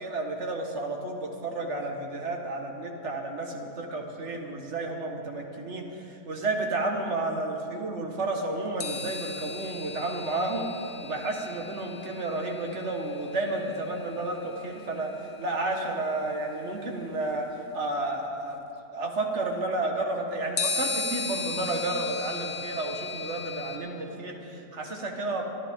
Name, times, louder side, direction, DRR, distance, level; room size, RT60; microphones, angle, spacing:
voice 1, 0.0-10.7 11.0-17.5 17.7-18.6 18.9-25.4, right 2 dB, 45° right, 1 dB, 1.8 m, -31 dB
sound 1, 8.8-14.4 15.7-15.8 20.6-23.8, left 4 dB, 50° left, 1.2 m, -36 dB
24.5 x 12.0 x 3.7 m, 2.7 s
omnidirectional pair, 1.8 m